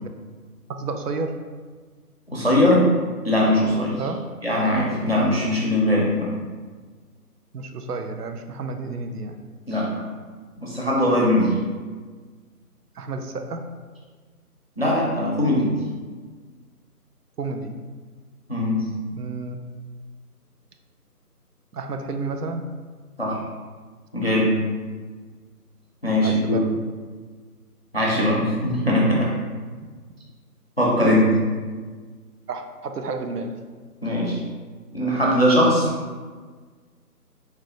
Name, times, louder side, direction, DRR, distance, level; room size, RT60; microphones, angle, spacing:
voice 1, 0.8-1.3 4.0-4.2 7.5-9.4 13.0-13.6 17.4-17.7 19.1-19.6 21.7-22.6 26.2-26.7 28.1-28.4 32.5-33.5, right 3 dB, 75° right, 5 dB, 0.5 m, -31 dB
voice 2, 2.3-2.9 3.2-4.0 4.4-6.3 9.7-10.0 10.6-11.5 14.8-15.7 18.5-18.8 23.2-23.4 24.1-24.6 26.0-26.6 27.9-29.3 30.8-31.2 34.0-34.4 34.9-35.9, left 1 dB, 40° left, -4 dB, 0.4 m, -20 dB
4.0 x 2.1 x 2.7 m, 1.5 s
figure-of-eight pair, 170°, 47 cm